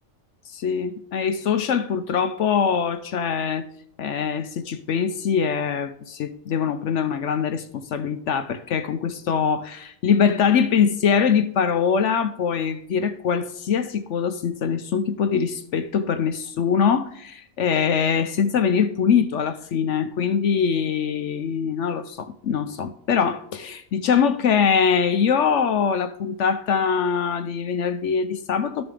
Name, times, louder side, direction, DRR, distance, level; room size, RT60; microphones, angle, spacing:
voice 1, 0.5-3.7 4.0-28.9, left 7 dB, 65° left, 0.9 m, -23 dB
12.5 x 7.0 x 3.4 m
omnidirectional pair, 1.5 m